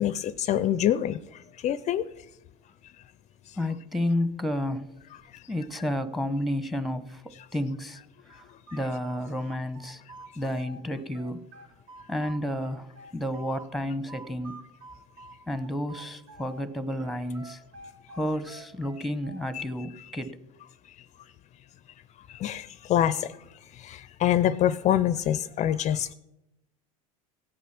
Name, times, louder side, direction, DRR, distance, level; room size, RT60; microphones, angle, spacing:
voice 1, 0.0-2.1 3.5-3.6 5.3-5.4 19.5-19.6 22.3-26.1, left 11 dB, 40° left, 16 dB, 0.5 m, -26 dB
voice 2, 3.6-4.9 5.5-7.2 7.5-8.0 8.3-8.5 8.7-10.0 10.4-11.4 12.1-14.6 15.5-17.6 18.1-20.4, left 1 dB, ahead, 13 dB, 1.0 m, -31 dB
sound 1, 8.3-10.8 11.1-13.7 14.1-16.7 17.0-19.6, right 2 dB, 55° right, 2.5 m, -47 dB
16.5 x 8.5 x 5.9 m, 0.92 s
hypercardioid pair, 95°, 19 cm